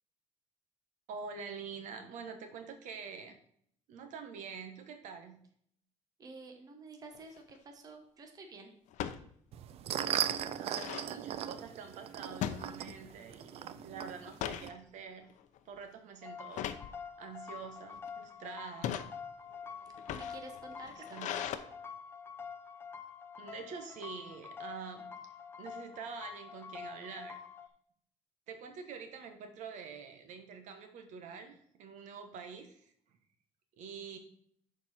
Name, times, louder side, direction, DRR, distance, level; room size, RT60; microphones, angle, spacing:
voice 1, 1.1-3.4 3.9-5.4 10.6-15.3 15.6-19.1 20.9-21.3 23.4-25.1 25.6-27.4 28.5-33.2 33.8-34.2, right 6 dB, 85° right, 6 dB, 1.3 m, -46 dB
voice 2, 6.2-8.7 20.1-21.6, right 3 dB, 30° right, 4 dB, 1.1 m, -50 dB
sound 1, 7.1-7.5 8.9-9.2 9.7-9.8 10.1-11.1 12.4-13.2 13.5-13.8 14.2-14.7 15.3-15.6 16.5-16.9 17.6-18.1 18.7-19.1 19.9-21.6, left 10 dB, 80° left, 0.6 m, -39 dB
sound 2, 9.5-14.7, right 10 dB, 55° right, 0.4 m, -38 dB
sound 3, 16.2-27.7, left 6 dB, 20° left, 0.5 m, -47 dB
10.5 x 4.6 x 4.3 m, 0.65 s
cardioid pair, 180°, 12 cm